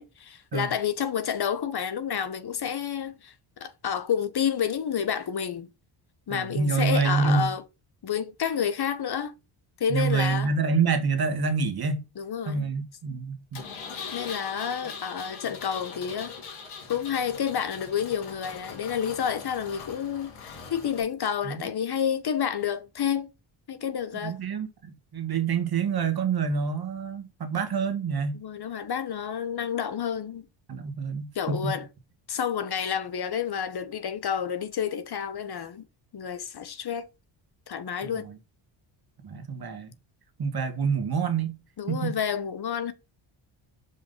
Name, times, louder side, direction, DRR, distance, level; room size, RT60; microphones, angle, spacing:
voice 1, 0.0-3.3 3.6-5.7 6.3-7.6 8.0-9.3 9.8-10.5 12.2-12.7 14.1-16.3 16.9-23.3 23.7-24.4 28.3-30.5 31.3-31.9 32.3-35.9 36.1-37.1 37.7-38.3 41.8-42.9, left 8 dB, 50° left, 1.1 m, -29 dB
voice 2, 6.3-7.5 9.9-12.1 12.5-13.6 21.4-21.7 24.2-28.4 30.7-31.8 38.2-38.3 39.2-39.9 40.4-41.6 41.9-42.2, right 5 dB, 50° right, 1.8 m, -27 dB
Engine, 13.5-21.0, left 5 dB, 90° left, 2.6 m, -41 dB
5.6 x 5.1 x 5.3 m
cardioid pair, 90°, 49 cm